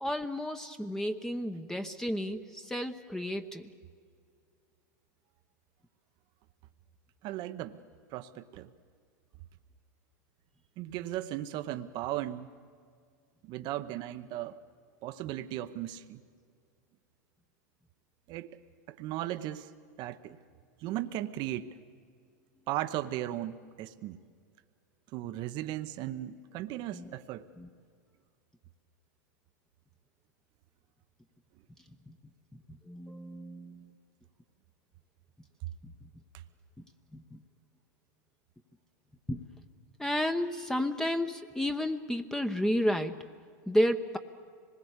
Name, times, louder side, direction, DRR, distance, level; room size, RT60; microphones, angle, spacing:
voice 1, 0.0-3.7 26.9-27.1 27.6-27.7 32.1-32.2 32.9-33.9 37.1-37.4 39.3-39.4 40.0-43.3 43.7-44.2, equal, 5° left, 7 dB, 0.9 m, -32 dB
voice 2, 7.2-7.8 8.1-8.7 10.8-12.5 13.4-14.6 15.0-16.2 18.3-18.6 18.9-19.7 20.0-20.4 20.8-21.8 22.7-24.2 25.1-27.5, right 13 dB, 50° right, 10 dB, 0.9 m, -36 dB
25.5 x 20.5 x 8.2 m, 2.2 s
hypercardioid pair, 100°, 10 cm